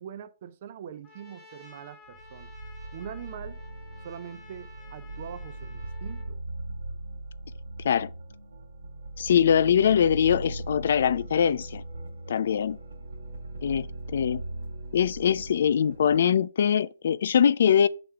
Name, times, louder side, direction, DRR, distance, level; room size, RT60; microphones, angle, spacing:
voice 1, 0.0-2.5 2.9-3.6 4.0-6.4, right 9 dB, 45° right, 0.8 m, -42 dB
Trumpet, 1.0-6.3, left 3 dB, 10° left, 1.3 m, -52 dB
sound 1, 2.1-16.2, right 2 dB, 80° right, 1.7 m, -39 dB
voice 2, 9.2-11.8 12.3-12.8 13.6-14.4 14.9-17.9, left 8 dB, 60° left, 0.4 m, -22 dB
7.0 x 3.5 x 5.7 m
hypercardioid pair, 155°, 0 cm